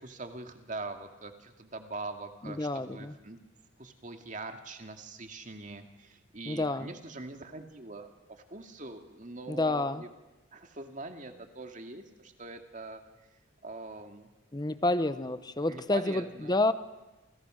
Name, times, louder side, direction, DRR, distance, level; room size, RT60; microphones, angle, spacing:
voice 1, 0.0-3.4 3.8-10.1 10.5-13.0 13.6-14.3 15.7-16.6, right 2 dB, 40° right, 5 dB, 2.3 m, -43 dB
voice 2, 2.4-3.2 6.5-6.9 9.5-10.0 14.5-16.7, left 2 dB, 20° left, 12 dB, 0.9 m, -29 dB
28.5 x 28.5 x 6.5 m, 1.1 s
head